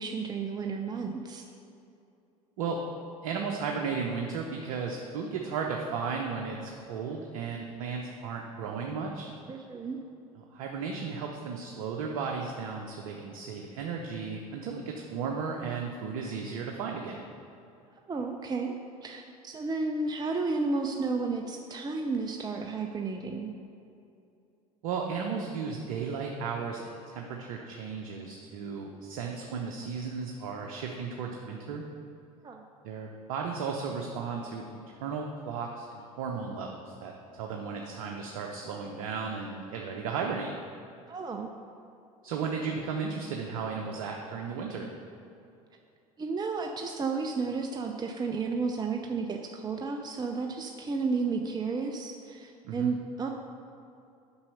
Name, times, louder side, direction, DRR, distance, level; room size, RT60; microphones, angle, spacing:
voice 1, 0.0-1.4 9.5-10.0 18.1-23.5 32.4-32.6 41.1-41.5 46.2-53.3, right 4 dB, 20° right, 3 dB, 0.6 m, -32 dB
voice 2, 3.2-9.3 10.5-17.2 24.8-31.8 32.8-40.5 42.2-44.9 52.6-52.9, right 5 dB, 70° right, 1 dB, 0.9 m, -35 dB
7.2 x 5.5 x 6.4 m, 2.6 s
hypercardioid pair, 75°, 19 cm